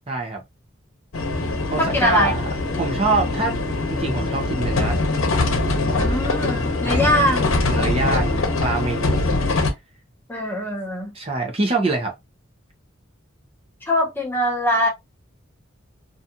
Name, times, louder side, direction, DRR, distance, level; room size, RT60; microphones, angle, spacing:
voice 1, 0.1-0.4 1.7-2.5 2.8-3.6 3.9-5.0 6.8-7.1 7.7-9.2 11.1-12.1, right 3 dB, 30° right, 0.6 m, -24 dB
sound 1, 1.1-9.7, left 2 dB, 80° left, 0.8 m, -22 dB
voice 2, 1.8-2.3 6.0-7.4 7.7-7.9 10.3-11.1 13.9-14.9, equal, 10° left, 0.7 m, -22 dB
2.6 x 2.3 x 2.7 m
head